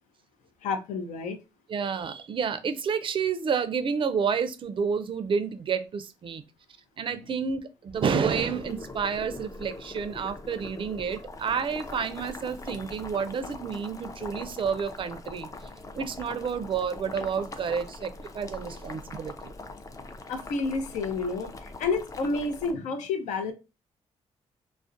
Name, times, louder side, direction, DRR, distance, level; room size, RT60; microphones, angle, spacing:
voice 1, 0.6-1.4 20.3-23.5, left 4 dB, 80° left, 7 dB, 0.5 m, -30 dB
voice 2, 1.7-6.4 7.0-15.5 16.0-19.5, right 6 dB, 45° right, 12 dB, 0.4 m, -30 dB
Boiling, 7.9-22.7, left 2 dB, 25° left, 0.4 m, -42 dB
2.3 x 2.0 x 2.5 m, 0.28 s
supercardioid pair, 70°, 12 cm